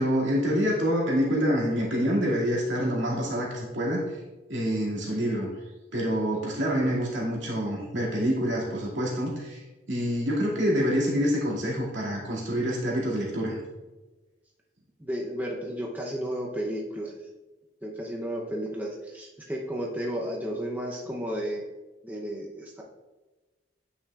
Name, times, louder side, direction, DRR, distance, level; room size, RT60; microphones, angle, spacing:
voice 1, 0.0-4.2 4.5-5.5 5.9-9.6 9.9-13.6, equal, 75° right, -4 dB, 2.3 m, -26 dB
voice 2, 15.0-17.2 17.8-21.6 22.0-22.8, equal, 10° right, -2 dB, 0.7 m, -33 dB
9.6 x 5.9 x 2.4 m, 1.2 s
head